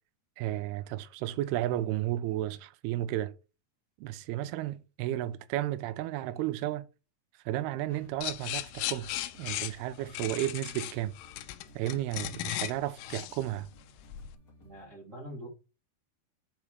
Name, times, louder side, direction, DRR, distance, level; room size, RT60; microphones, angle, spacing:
voice 1, 0.4-3.3 4.0-6.9 7.5-11.2 11.8-13.7, right 14 dB, 80° right, 2.5 m, -33 dB
sound 1, 7.9-14.9, equal, 40° left, 1.3 m, -58 dB
sound 2, 8.2-14.3, left 15 dB, 85° left, 2.6 m, -37 dB
voice 2, 14.6-15.5, equal, 35° right, 1.3 m, -44 dB
6.5 x 4.8 x 4.5 m
omnidirectional pair, 4.7 m